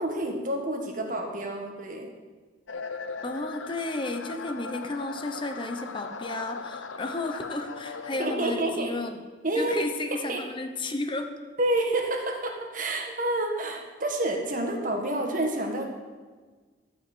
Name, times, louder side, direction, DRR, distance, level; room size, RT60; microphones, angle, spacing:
voice 1, 0.0-2.1 8.2-8.9 9.4-9.7 10.3-10.4 11.6-15.8, right 1 dB, 45° right, 2 dB, 1.6 m, -28 dB
sound 1, 2.7-8.9, left 4 dB, 85° left, 0.7 m, -38 dB
voice 2, 3.2-9.2 9.6-11.3, left 2 dB, 25° left, 6 dB, 0.8 m, -33 dB
13.5 x 5.6 x 7.9 m, 1.4 s
head